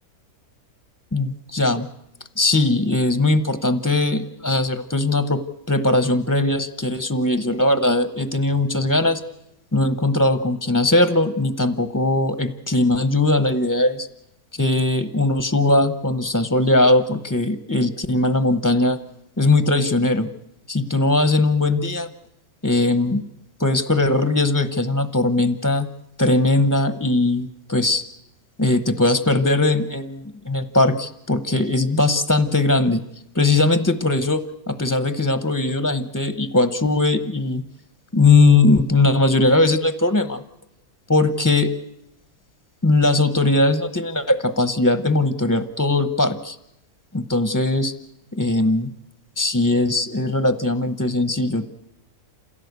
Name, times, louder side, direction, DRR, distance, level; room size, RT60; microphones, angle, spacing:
voice 1, 1.1-1.9 2.4-5.4 5.7-9.2 9.7-14.1 14.6-19.0 19.4-20.3 20.7-22.1 22.6-23.2 23.6-25.9 26.2-28.0 28.6-33.0 33.3-37.6 38.1-40.4 41.1-41.7 42.8-46.6 47.1-47.9 48.3-48.9 49.4-51.7, left 2 dB, 15° left, 10 dB, 0.6 m, -19 dB
28.0 x 16.5 x 8.1 m, 0.83 s
omnidirectional pair, 1.6 m